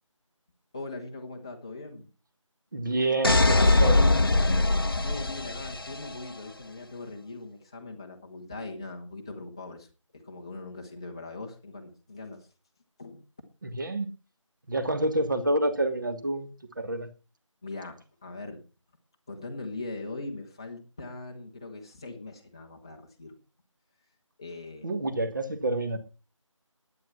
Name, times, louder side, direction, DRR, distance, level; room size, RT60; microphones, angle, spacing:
voice 1, 0.7-2.1 5.0-9.9 10.1-12.5 13.0-13.2 17.6-18.6 19.3-23.3 24.4-24.9, left 2 dB, 10° left, 0.9 m, -40 dB
voice 2, 2.7-4.0 13.6-14.1 14.7-16.5 16.8-17.1 24.8-26.0, right 2 dB, 35° right, 1.8 m, -28 dB
sound 1, 3.2-6.1, left 2 dB, 45° left, 0.8 m, -22 dB
11.5 x 9.7 x 5.8 m
figure-of-eight pair, 165°, 17 cm